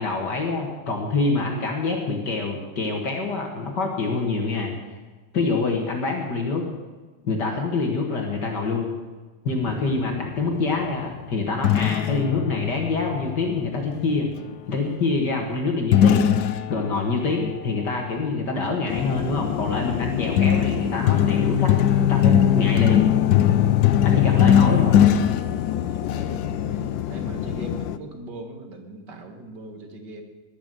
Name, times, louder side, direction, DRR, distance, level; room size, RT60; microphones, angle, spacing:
voice 1, 0.0-4.7 5.3-6.6 7.2-8.9 9.4-14.3 14.7-21.7 22.1-23.1 24.0-25.0, left 3 dB, 55° left, 1 dB, 2.3 m, -26 dB
sound 1, 9.6-14.4 15.9-18.1 19.1-19.4 19.9-26.4, left 10 dB, 90° left, 0.8 m, -21 dB
sound 2, 18.9-28.0, left 10 dB, 70° left, 1.3 m, -29 dB
voice 2, 24.1-24.6 25.9-30.2, right 2 dB, 55° right, 4 dB, 2.3 m, -40 dB
20.0 x 7.2 x 7.8 m, 1.3 s
omnidirectional pair, 2.3 m